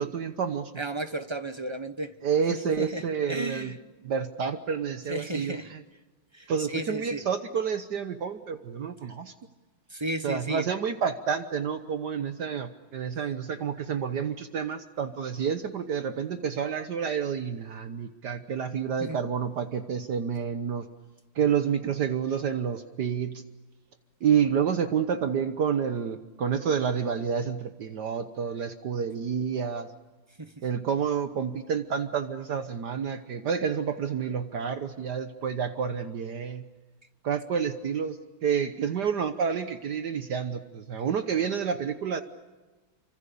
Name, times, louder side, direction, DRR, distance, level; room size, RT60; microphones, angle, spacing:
voice 1, 0.0-0.7 2.2-3.7 4.0-5.8 6.5-9.3 10.2-20.9 21.3-23.4 24.2-29.9 30.6-36.6 37.2-42.2, right 7 dB, 60° right, 9 dB, 1.6 m, -29 dB
voice 2, 0.8-2.1 2.5-3.8 5.1-5.7 6.3-7.2 9.9-10.7 19.0-19.2 30.4-30.6, right 1 dB, 20° right, 9 dB, 0.9 m, -34 dB
29.0 x 25.5 x 7.0 m, 1.2 s
omnidirectional pair, 2.1 m